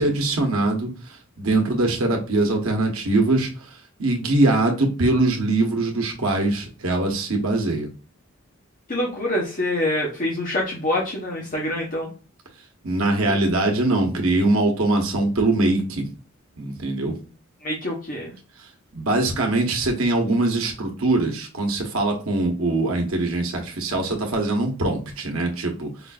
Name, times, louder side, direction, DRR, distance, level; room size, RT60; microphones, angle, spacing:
voice 1, 0.0-3.5 4.0-7.9 12.8-16.0 16.6-17.1 18.9-26.1, right 2 dB, 75° right, 2 dB, 1.0 m, -22 dB
voice 2, 8.9-12.1 13.2-13.4 17.6-18.3, left 1 dB, 40° left, -3 dB, 0.8 m, -26 dB
4.9 x 2.5 x 2.3 m, 0.36 s
head